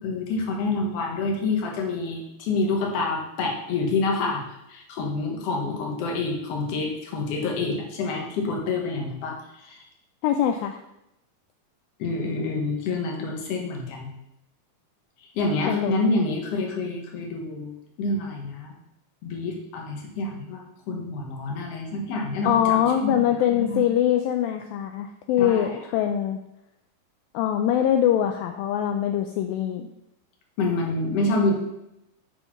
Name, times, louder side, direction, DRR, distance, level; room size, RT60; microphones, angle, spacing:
voice 1, 0.0-4.4 4.7-9.8 12.0-14.1 15.3-18.7 19.2-23.2 23.5-23.8 25.4-25.8 30.6-31.5, left 3 dB, 55° left, 0 dB, 1.9 m, -27 dB
voice 2, 10.2-10.8 15.7-16.0 22.5-26.4 27.3-29.9, left 10 dB, 80° left, 6 dB, 2.2 m, -23 dB
6.3 x 5.4 x 5.8 m, 0.85 s
omnidirectional pair, 4.4 m